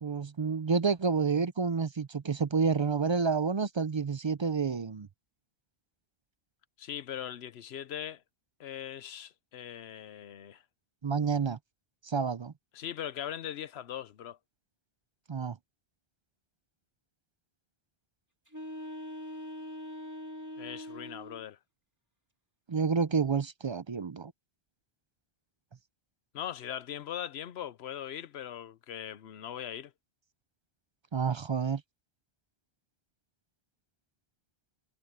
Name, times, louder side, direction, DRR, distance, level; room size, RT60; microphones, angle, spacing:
voice 1, 0.0-5.1 11.0-11.6 12.0-12.5 15.3-15.6 22.7-24.3 31.1-31.8, right 5 dB, 40° right, 0.4 m, -29 dB
voice 2, 6.8-8.2 8.6-10.6 12.7-14.4 20.6-21.6 26.3-29.9, left 10 dB, 85° left, 1.0 m, -40 dB
sound 1, 18.5-21.5, equal, 15° right, 2.1 m, -42 dB
omnidirectional pair, 1.0 m